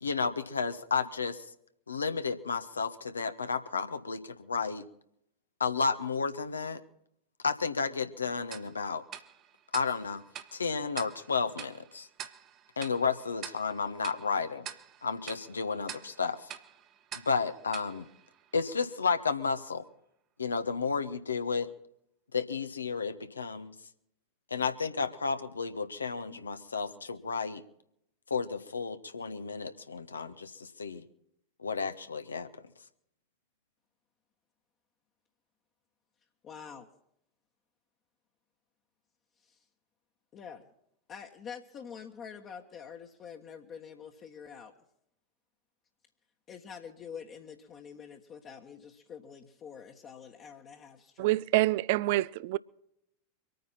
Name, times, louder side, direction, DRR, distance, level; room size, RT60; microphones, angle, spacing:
voice 1, 0.0-1.5 1.9-4.8 5.6-6.8 7.4-9.0 9.7-10.2 10.5-12.1 12.8-14.7 15.0-16.5 17.1-18.1 18.5-19.8 20.4-21.7 22.3-23.7 24.5-27.6 28.3-31.0 31.6-32.5, left 5 dB, 75° left, 1.3 m, -32 dB
Tick-tock, 8.5-19.0, right 9 dB, 35° right, 1.3 m, -47 dB
voice 2, 36.4-36.9 39.4-39.6 40.3-40.6 41.1-44.7 46.5-51.4, left 7 dB, 30° left, 1.5 m, -46 dB
voice 3, 51.2-52.6, right 18 dB, 50° right, 0.5 m, -26 dB
24.5 x 9.4 x 5.7 m
figure-of-eight pair, 90°, 0 cm